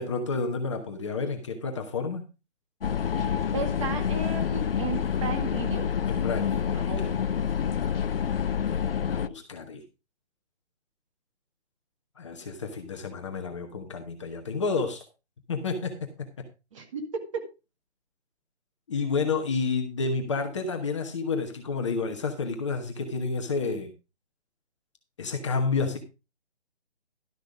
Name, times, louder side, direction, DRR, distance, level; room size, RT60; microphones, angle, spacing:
voice 1, 0.0-2.2 6.1-7.1 9.0-9.8 12.2-15.0 15.5-16.5 18.9-23.9 25.2-26.0, left 4 dB, 25° left, 4 dB, 1.1 m, -30 dB
sound 1, 2.8-9.3, left 8 dB, 55° left, 0.6 m, -28 dB
voice 2, 3.5-5.9 6.7-7.1 16.7-17.4, right 4 dB, 30° right, 3 dB, 1.9 m, -34 dB
12.0 x 6.0 x 4.9 m, 0.30 s
hypercardioid pair, 165°, 34 cm